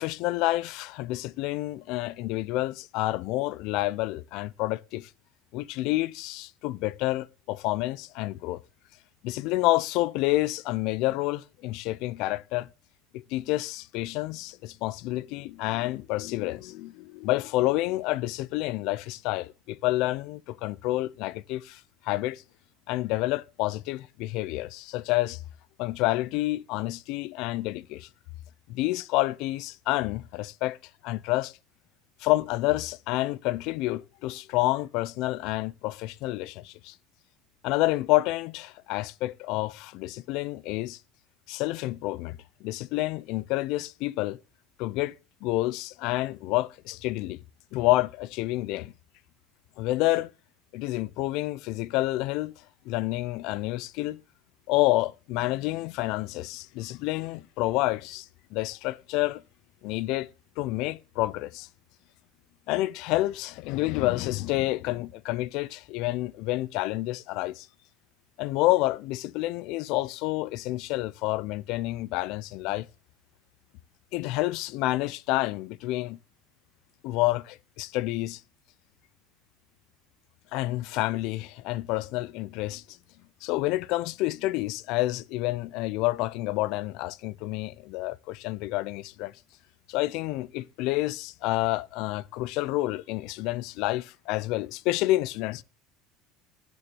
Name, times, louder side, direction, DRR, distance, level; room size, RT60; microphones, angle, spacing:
voice 1, 0.0-5.1 5.5-8.6 9.2-12.7 13.1-22.4 22.9-25.4 25.8-28.1 28.7-30.8 31.0-31.5 32.2-37.0 37.6-41.0 41.5-44.4 44.8-45.1 45.4-47.4 47.7-48.9 49.8-50.3 50.7-52.5 52.9-54.2 54.7-59.4 59.8-60.3 60.6-61.7 62.7-67.7 68.4-72.9 74.1-76.2 77.0-78.4 80.5-83.0 83.4-89.3 89.9-95.6, left 18 dB, 60° left, 0.6 m, -29 dB
12.0 x 6.9 x 6.9 m
cardioid pair, 150°, 0 cm